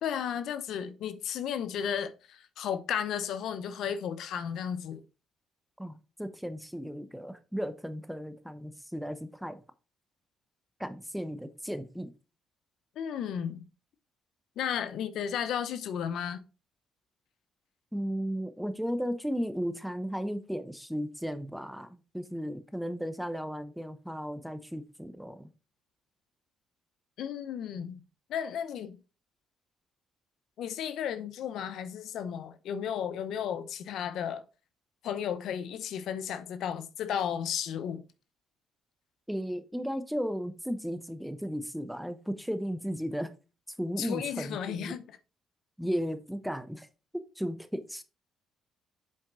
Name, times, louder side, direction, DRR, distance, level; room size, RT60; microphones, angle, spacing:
voice 1, 0.0-5.0 13.0-13.6 14.6-16.4 27.2-28.0 28.3-29.0 30.6-34.4 35.0-38.0 44.0-45.0, left 8 dB, 75° left, 0.8 m, -34 dB
voice 2, 5.8-9.6 10.8-12.1 17.9-25.5 39.3-43.3 43.8-44.9 45.8-46.9 47.1-48.0, equal, ahead, 0.9 m, -35 dB
7.5 x 4.4 x 3.8 m
cardioid pair, 90°, 0 cm